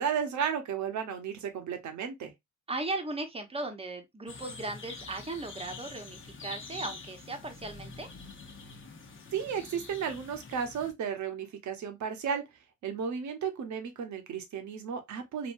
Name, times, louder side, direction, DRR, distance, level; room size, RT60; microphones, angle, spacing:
voice 1, 0.0-2.3 9.3-12.4 12.8-15.5, right 7 dB, 70° right, 1.0 m, -33 dB
voice 2, 2.7-8.1, right 2 dB, 20° right, 1.0 m, -37 dB
sound 1, 4.3-10.9, left 4 dB, 40° left, 1.0 m, -46 dB
3.1 x 2.7 x 2.6 m
cardioid pair, 90°, 30 cm